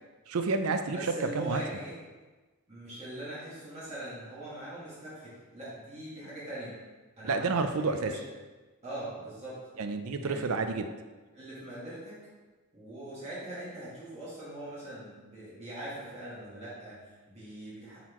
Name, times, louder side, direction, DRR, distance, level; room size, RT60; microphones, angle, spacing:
voice 1, 0.3-1.0 1.3-1.6 7.2-8.1 9.8-10.9, right 4 dB, 70° right, 7 dB, 0.5 m, -29 dB
voice 2, 0.9-2.0 2.7-6.8 7.2-8.2 8.8-9.6 10.1-10.5 11.3-12.2 12.7-18.0, right 1 dB, 30° right, -9 dB, 1.8 m, -42 dB
8.5 x 4.1 x 3.0 m, 1.3 s
head